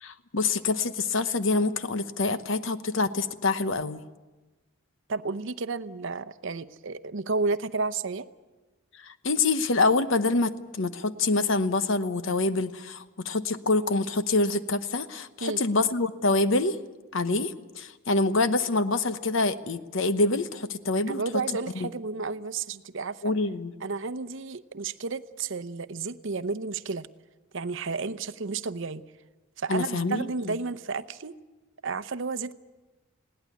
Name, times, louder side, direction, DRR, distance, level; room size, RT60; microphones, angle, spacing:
voice 1, 0.0-4.0 9.1-16.8 17.1-21.2 21.7-21.9 23.2-23.7 29.7-30.6, left 3 dB, 60° left, 12 dB, 1.0 m, -26 dB
voice 2, 5.1-8.3 15.4-15.6 21.1-23.3 23.8-27.1 27.5-29.0 29.6-31.4 31.8-32.5, right 4 dB, 60° right, 14 dB, 0.7 m, -32 dB
20.5 x 17.5 x 9.6 m, 1.2 s
head